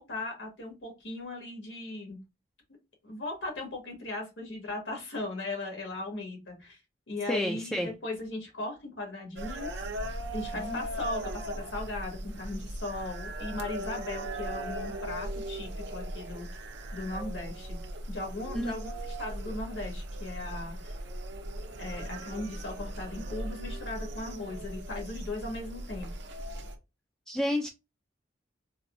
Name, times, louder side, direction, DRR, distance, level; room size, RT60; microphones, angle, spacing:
voice 1, 0.0-2.2 3.0-6.8 7.1-9.9 10.3-16.5 16.9-17.8 18.1-20.9 21.8-26.1, left 2 dB, 90° left, 1.8 m, -38 dB
voice 2, 7.3-7.9 10.5-10.8 18.5-18.7 27.3-27.7, equal, 5° left, 0.3 m, -30 dB
sound 1, 9.4-26.8, right 1 dB, 70° right, 0.6 m, -38 dB
4.1 x 2.2 x 2.6 m
head